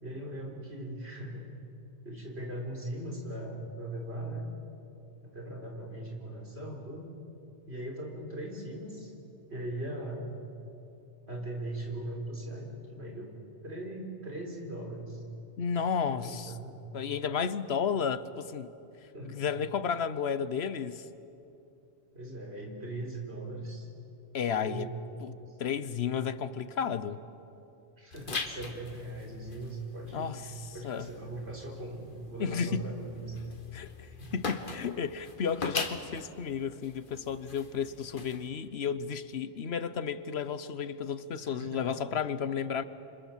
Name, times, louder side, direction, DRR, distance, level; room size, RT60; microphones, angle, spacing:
voice 1, 0.0-1.5 2.0-4.5 5.2-7.1 7.7-9.1 9.5-10.3 11.3-13.3 13.6-15.2 16.1-16.9 19.1-19.4 22.1-23.9 24.4-24.9 25.4-25.6 28.0-33.4 34.2-34.4 41.4-41.9, right 1 dB, 75° right, 1 dB, 4.4 m, -39 dB
voice 2, 15.6-16.5 16.9-18.7 19.2-21.1 24.3-24.9 25.2-25.3 25.6-27.2 30.1-31.1 32.4-32.8 33.7-42.8, left 7 dB, 70° left, 14 dB, 1.1 m, -33 dB
sound 1, 28.1-38.5, left 4 dB, 50° left, 1.6 m, -41 dB
28.0 x 25.5 x 7.4 m, 2.8 s
omnidirectional pair, 1.1 m